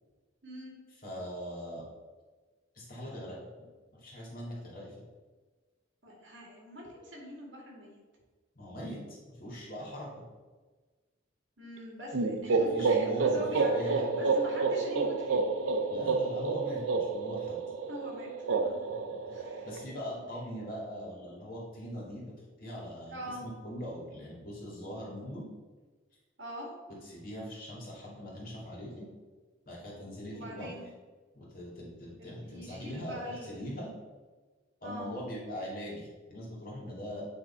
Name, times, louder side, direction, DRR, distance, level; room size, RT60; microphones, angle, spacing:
voice 1, 0.4-0.7 6.0-8.0 11.6-15.4 17.9-18.7 19.3-19.7 23.1-23.4 26.4-26.7 30.3-30.8 32.2-33.6 34.8-35.1, equal, 65° right, -2 dB, 2.0 m, -43 dB
voice 2, 1.0-1.8 2.7-3.4 3.9-4.9 8.5-10.1 12.5-14.1 15.9-17.6 19.2-22.3 22.6-25.4 27.0-29.1 29.7-30.8 31.3-33.9 34.8-37.3, equal, 45° left, -4 dB, 2.1 m, -41 dB
sound 1, 12.1-19.8, right 4 dB, 80° right, 0.6 m, -29 dB
9.0 x 3.5 x 4.3 m, 1.3 s
head